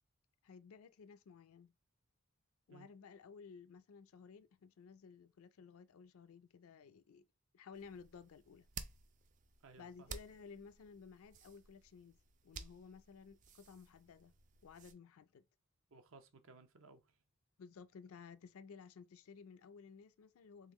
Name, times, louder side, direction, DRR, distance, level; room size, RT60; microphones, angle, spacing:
voice 1, 0.4-1.7 2.7-7.2 7.5-8.7 9.8-12.2 12.4-14.3 14.6-15.4 17.6-20.7, left 5 dB, 70° left, 0.4 m, -56 dB
sound 1, 7.7-14.9, right 5 dB, 35° right, 0.4 m, -54 dB
voice 2, 9.6-10.2 15.9-17.2, right 4 dB, 65° right, 0.7 m, -60 dB
3.8 x 3.3 x 3.0 m
head